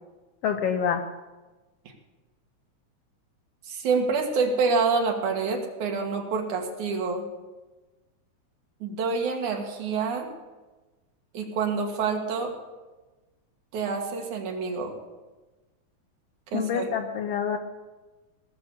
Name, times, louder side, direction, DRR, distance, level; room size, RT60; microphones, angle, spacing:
voice 1, 0.4-1.0 16.5-17.6, left 7 dB, 75° left, 6 dB, 1.5 m, -26 dB
voice 2, 3.6-7.3 8.8-10.3 11.3-12.5 13.7-14.9 16.5-16.9, right 4 dB, 80° right, 2 dB, 3.1 m, -27 dB
18.5 x 6.9 x 6.7 m, 1.2 s
omnidirectional pair, 3.4 m